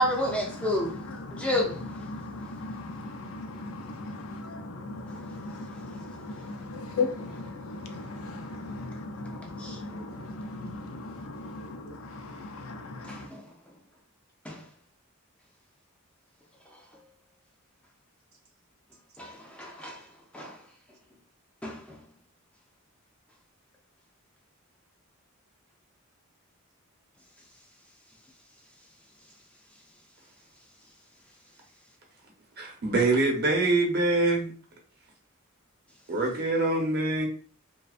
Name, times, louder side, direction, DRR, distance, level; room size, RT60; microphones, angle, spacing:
voice 1, 0.0-1.0 1.3-1.8 9.6-10.1 13.1-13.4 14.5-14.6 19.2-20.0 20.3-20.6 21.6-22.0, equal, 5° left, 0.3 m, -30 dB
voice 2, 0.5-13.3, left 3 dB, 75° left, 0.4 m, -37 dB
voice 3, 32.6-34.5 36.1-37.3, right 2 dB, 50° right, 0.8 m, -24 dB
2.5 x 2.2 x 2.4 m
head